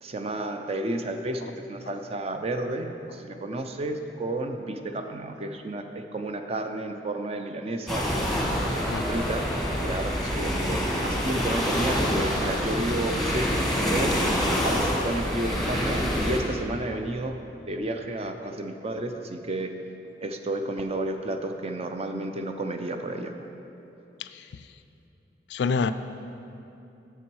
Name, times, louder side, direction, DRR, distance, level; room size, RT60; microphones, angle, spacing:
voice 1, 0.0-8.1 9.1-9.5 9.8-14.1 14.6-16.0 16.2-17.3 17.7-19.7 20.2-23.4, right 1 dB, 35° right, 6 dB, 0.5 m, -31 dB
sound 1, 7.9-16.4, equal, ahead, 1.3 m, -26 dB
voice 2, 25.5-25.9, left 5 dB, 70° left, 11 dB, 0.3 m, -27 dB
9.0 x 6.8 x 4.7 m, 2.9 s
head